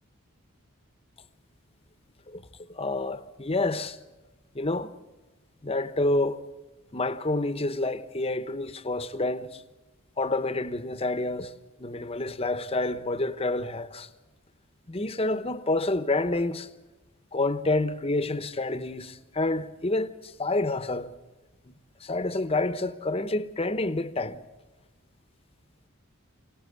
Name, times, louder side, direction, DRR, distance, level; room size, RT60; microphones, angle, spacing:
voice 1, 2.7-4.0 4.5-4.9 5.6-6.4 6.9-9.6 10.2-11.5 11.8-14.1 14.9-16.7 17.3-21.1 22.0-24.4, left 2 dB, 25° left, 1.0 m, -28 dB
23.5 x 18.5 x 8.1 m
head